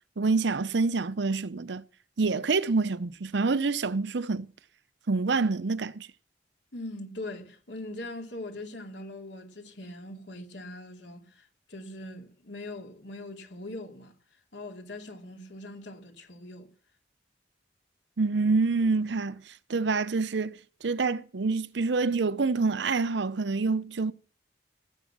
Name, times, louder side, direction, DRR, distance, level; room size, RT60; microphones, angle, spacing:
voice 1, 0.2-1.8 2.2-4.5 5.1-6.1 18.2-24.1, right 4 dB, 75° right, 0.7 m, -27 dB
voice 2, 6.7-14.1 14.5-16.7, left 1 dB, 75° left, 2.7 m, -41 dB
18.0 x 8.2 x 6.0 m
head